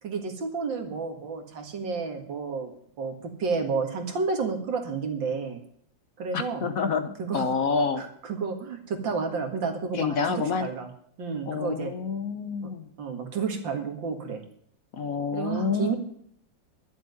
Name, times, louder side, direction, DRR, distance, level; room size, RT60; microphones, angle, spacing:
voice 1, 0.0-2.7 3.0-5.6 6.2-6.7 7.2-7.5 8.0-10.9 11.2-11.9 12.6-12.7 13.0-14.4 15.3-16.0, right 5 dB, 75° right, 5 dB, 2.6 m, -31 dB
voice 2, 6.3-8.0 9.9-10.7 11.5-12.9 14.9-15.9, left 5 dB, 55° left, 9 dB, 1.1 m, -28 dB
11.5 x 7.4 x 9.5 m, 0.65 s
omnidirectional pair, 2.0 m